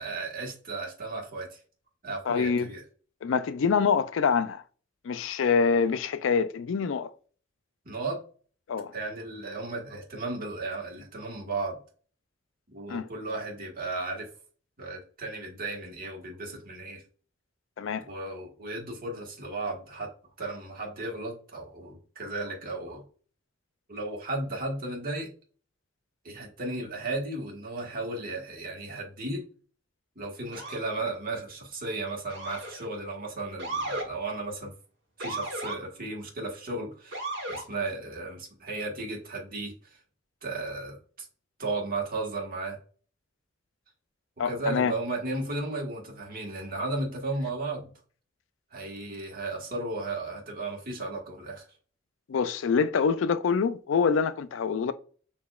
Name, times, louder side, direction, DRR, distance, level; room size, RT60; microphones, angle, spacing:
voice 1, 0.0-1.6 2.0-2.8 7.8-8.2 8.9-11.8 12.7-14.3 14.8-17.0 18.1-20.1 20.4-23.0 23.9-25.3 26.2-29.4 30.1-34.7 35.2-40.0 40.4-41.3 41.6-42.8 44.4-47.9 48.7-51.7, right 2 dB, 50° right, 1.5 m, -35 dB
voice 2, 2.3-2.7 3.2-4.6 5.0-7.1 8.7-8.9 12.9-13.1 17.8-18.0 44.4-44.9 52.3-54.9, left 5 dB, 70° left, 0.4 m, -25 dB
Motor vehicle (road) / Siren, 30.5-30.9 32.3-32.9 33.6-34.1 35.2-35.8 37.1-37.7, right 2 dB, 70° right, 1.2 m, -35 dB
6.7 x 2.8 x 2.3 m
head